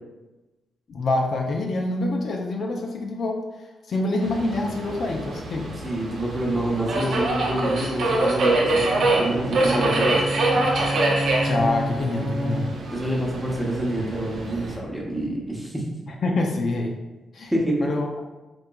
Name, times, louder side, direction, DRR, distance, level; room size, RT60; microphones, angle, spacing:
voice 1, 0.9-3.4 3.9-5.7 11.4-12.7 16.1-16.9 17.3-17.5 17.8-18.1, left 2 dB, 50° left, 1 dB, 0.4 m, -26 dB
Subway metro underground, 4.2-14.8, right 2 dB, 55° right, 0.6 m, -25 dB
voice 2, 5.8-10.2 12.9-15.8 17.5-17.8, right 1 dB, ahead, -3 dB, 0.7 m, -27 dB
Bowed string instrument, 8.8-13.0, equal, 90° right, 0.9 m, -29 dB
3.8 x 3.6 x 2.2 m, 1.1 s
wide cardioid pair, 160°, 0 cm